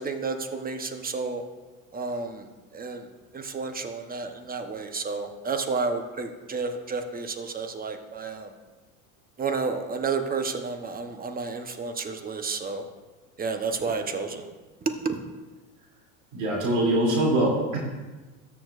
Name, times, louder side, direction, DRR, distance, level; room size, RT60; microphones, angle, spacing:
voice 1, 0.0-1.4 1.9-2.5 2.7-3.1 3.3-8.5 9.4-12.8 13.4-14.5 15.0-15.2, right 4 dB, 20° right, 7 dB, 0.9 m, -31 dB
voice 2, 16.3-17.8, right 1 dB, 65° right, -3 dB, 2.9 m, -23 dB
13.0 x 7.0 x 2.5 m, 1.2 s
hypercardioid pair, 90°, 40 cm